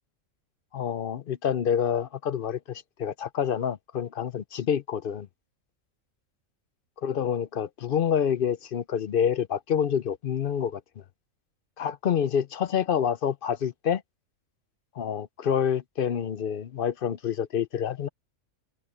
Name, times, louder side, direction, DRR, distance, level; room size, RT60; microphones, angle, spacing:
voice 1, 0.7-5.3 7.0-10.8 11.8-14.0 15.0-18.1, left 8 dB, 55° left, 0.6 m, -27 dB
omnidirectional pair, 1.4 m